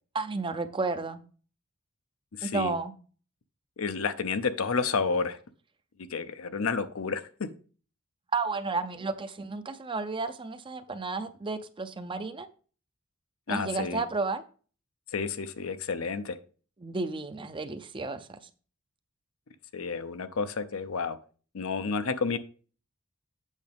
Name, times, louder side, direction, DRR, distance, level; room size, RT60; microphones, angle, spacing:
voice 1, 0.1-1.2 2.4-2.9 8.3-12.5 13.5-14.4 16.8-18.4, right 3 dB, 25° right, 0.5 m, -32 dB
voice 2, 2.4-2.7 3.8-5.4 6.1-7.2 10.9-11.0 13.5-14.0 15.1-16.4 19.7-21.2 21.5-22.4, left 5 dB, 70° left, 0.7 m, -30 dB
8.2 x 6.4 x 3.5 m
head